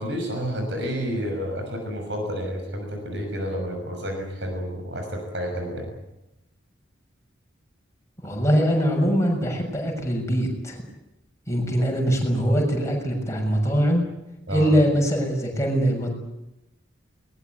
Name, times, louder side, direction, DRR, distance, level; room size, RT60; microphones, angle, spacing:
voice 1, 0.0-5.9 14.5-14.7, equal, 65° right, 3 dB, 6.7 m, -30 dB
voice 2, 8.2-10.8 11.5-14.0 14.5-16.1, equal, 15° left, 0 dB, 6.8 m, -22 dB
22.5 x 21.0 x 9.6 m, 0.91 s
head